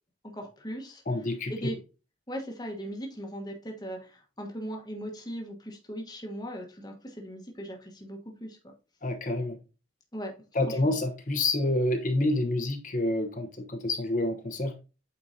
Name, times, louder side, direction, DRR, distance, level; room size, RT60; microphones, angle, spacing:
voice 1, 0.3-1.0 1.5-1.8 2.3-8.6 10.1-10.3 10.7-10.8, equal, 20° left, 1.2 m, -38 dB
voice 2, 1.1-1.7 9.0-9.6 10.5-14.8, left 2 dB, 40° left, 1.0 m, -28 dB
8.4 x 4.4 x 2.7 m
head